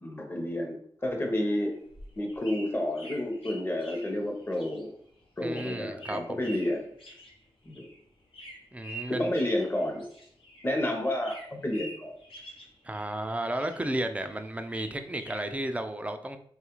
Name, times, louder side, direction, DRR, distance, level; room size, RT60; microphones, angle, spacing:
voice 1, 0.0-1.8 2.2-4.9 5.4-6.8 7.6-7.9 9.1-10.0 10.6-12.1, left 1 dB, 25° left, 2 dB, 0.8 m, -30 dB
sound 1, 1.7-10.8 11.0-13.3 13.5-15.6, right 1 dB, 70° left, 0.8 m, -47 dB
voice 2, 5.4-6.5 8.7-9.3 12.8-16.4, right 1 dB, 15° right, 7 dB, 0.4 m, -33 dB
3.2 x 2.4 x 3.0 m, 0.64 s
cardioid pair, 55°, 9 cm